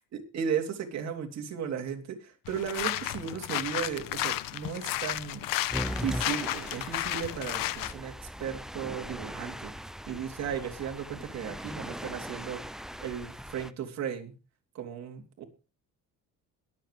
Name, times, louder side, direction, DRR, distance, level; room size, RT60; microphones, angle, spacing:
voice 1, 0.1-5.5 6.0-8.1 8.4-9.7 10.1-12.6 13.0-14.3 14.7-15.4, right 8 dB, 55° right, 3 dB, 3.4 m, -35 dB
sound 1, 2.4-7.9, left 15 dB, 80° left, 1.0 m, -33 dB
sound 2, 5.7-13.7, equal, ahead, 0.6 m, -39 dB
21.5 x 7.8 x 3.4 m, 0.32 s
cardioid pair, 135°, 33 cm